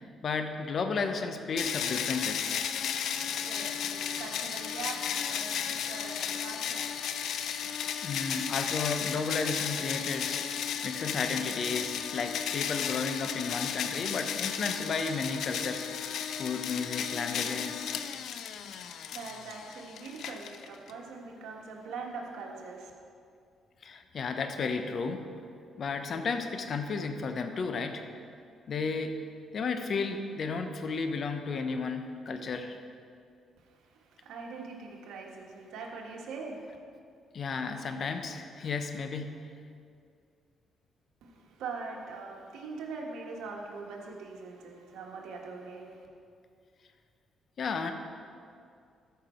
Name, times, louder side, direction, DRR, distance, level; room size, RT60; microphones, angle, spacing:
voice 1, 0.2-2.8 8.0-17.9 23.8-25.2 25.8-28.0 28.7-29.1 29.5-32.8 37.3-39.4 47.6-47.9, left 4 dB, 50° left, 7 dB, 0.8 m, -33 dB
sound 1, 1.6-20.9, left 8 dB, 75° left, 0.5 m, -34 dB
voice 2, 3.1-7.1 18.6-22.9 33.6-36.7 41.2-46.1, right 4 dB, 85° right, 0 dB, 1.5 m, -42 dB
13.5 x 5.9 x 4.4 m, 2.3 s
cardioid pair, 90°, 0 cm